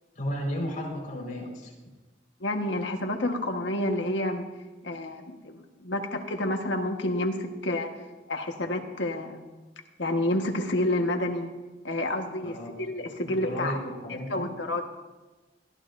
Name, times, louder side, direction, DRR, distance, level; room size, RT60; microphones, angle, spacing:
voice 1, 0.1-1.7 12.4-12.7 13.2-14.5, equal, 45° left, -2 dB, 4.9 m, -33 dB
voice 2, 2.4-4.4 4.8-7.9 8.3-9.4 10.0-11.5 11.8-13.8 14.1-14.8, left 1 dB, 80° left, 4 dB, 1.5 m, -29 dB
22.0 x 15.0 x 2.7 m, 1.2 s
head